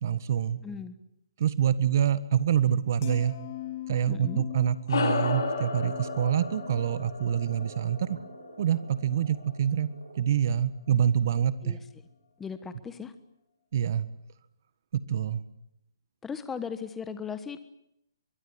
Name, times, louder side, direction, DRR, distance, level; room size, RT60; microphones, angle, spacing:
voice 1, 0.0-0.6 1.4-3.4 3.9-8.2 8.6-9.9 10.2-11.8 13.7-14.1 14.9-15.4, right 9 dB, 45° right, 15 dB, 1.6 m, -26 dB
voice 2, 0.6-1.0 4.1-4.4 11.6-11.8 12.4-13.1 16.2-17.6, left 6 dB, 5° left, 11 dB, 1.3 m, -37 dB
sound 1, 3.0-9.3 9.6-10.0, left 14 dB, 30° left, 2.3 m, -44 dB
sound 2, 4.9-9.6, left 4 dB, 65° left, 7.7 m, -33 dB
Frog, 5.2-10.3, right 3 dB, 85° right, 6.4 m, -49 dB
23.5 x 22.5 x 9.7 m, 0.79 s
hypercardioid pair, 165°, 2 cm